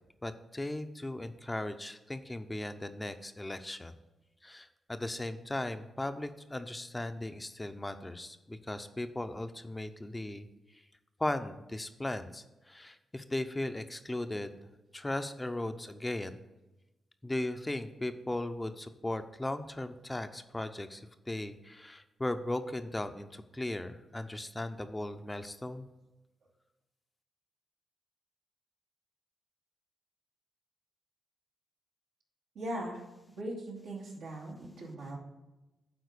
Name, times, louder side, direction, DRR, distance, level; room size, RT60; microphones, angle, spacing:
voice 1, 0.2-3.9 4.4-10.5 11.2-14.5 14.9-16.4 17.2-25.9, left 1 dB, 20° left, 9 dB, 0.6 m, -37 dB
voice 2, 32.5-33.0 33.4-35.2, right 1 dB, 85° right, -4 dB, 2.5 m, -39 dB
9.5 x 3.7 x 6.7 m, 1.0 s
supercardioid pair, 55°, 0 cm